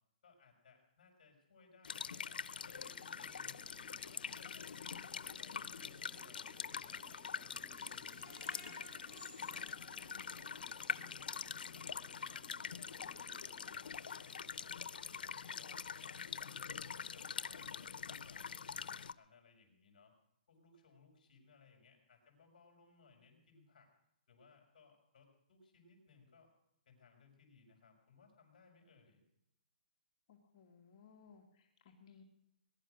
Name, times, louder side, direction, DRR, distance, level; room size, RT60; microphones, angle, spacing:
voice 1, 0.2-3.6 3.9-7.1 7.3-9.7 10.0-10.2 10.5-11.5 11.7-16.6 16.9-20.1 20.5-23.9 24.3-26.5 26.9-29.2, left 5 dB, 55° left, 2 dB, 5.2 m, -65 dB
sound 1, 1.8-19.1, left 6 dB, 85° left, 0.7 m, -44 dB
sound 2, 2.8-13.8, right 2 dB, 5° right, 0.7 m, -66 dB
Screech, 7.8-10.7 11.2-11.3 11.7-11.8, equal, 20° right, 4.6 m, -58 dB
voice 2, 30.3-32.2, left 6 dB, 35° left, 2 dB, 1.8 m, -62 dB
20.0 x 11.0 x 6.4 m, 0.79 s
hypercardioid pair, 170°, 5 cm